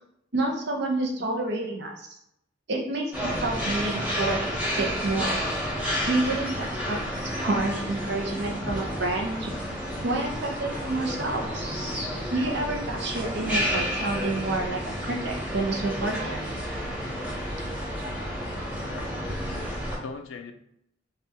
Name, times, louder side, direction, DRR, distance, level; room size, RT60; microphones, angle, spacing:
voice 1, 0.3-2.1 2.7-5.4 6.1-7.0 7.3-9.5 10.0-11.7 12.3-16.4, right 2 dB, 60° right, 1 dB, 0.7 m, -29 dB
sound 1, 3.1-20.0, equal, 5° right, 0.8 m, -31 dB
voice 2, 18.9-20.5, left 4 dB, 80° left, 7 dB, 0.4 m, -42 dB
3.3 x 2.4 x 2.8 m, 0.76 s
head